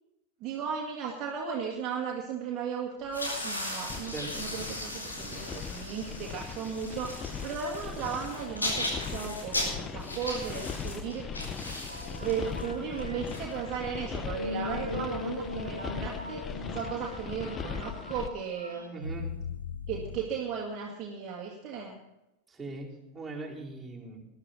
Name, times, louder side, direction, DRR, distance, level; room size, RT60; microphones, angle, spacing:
voice 1, 0.4-11.3 12.2-19.3 19.9-22.0, right 7 dB, 35° right, -1 dB, 2.0 m, -36 dB
sound 1, 3.0-14.1, left 1 dB, 80° left, 4.6 m, -37 dB
sound 2, 3.9-18.3, left 6 dB, 25° left, 0.7 m, -39 dB
sound 3, 11.9-20.3, left 2 dB, 90° right, 1.5 m, -40 dB
voice 2, 18.9-19.3 22.5-22.9 23.1-24.2, right 3 dB, 10° right, -6 dB, 4.5 m, -40 dB
20.0 x 11.5 x 4.1 m, 0.93 s
figure-of-eight pair, 90°, 0 cm